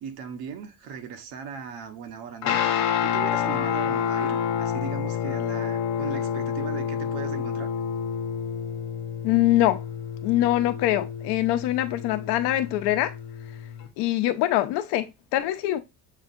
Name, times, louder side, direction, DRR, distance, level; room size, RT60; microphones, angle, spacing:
voice 1, 0.0-2.6 3.0-7.7, right 7 dB, 70° right, 1.0 m, -38 dB
Guitar, 2.4-13.9, left 8 dB, 45° left, 0.9 m, -29 dB
voice 2, 9.2-9.8 10.2-13.1 14.0-15.8, left 14 dB, 80° left, 0.8 m, -23 dB
7.3 x 2.7 x 2.5 m
cardioid pair, 170°, 40 cm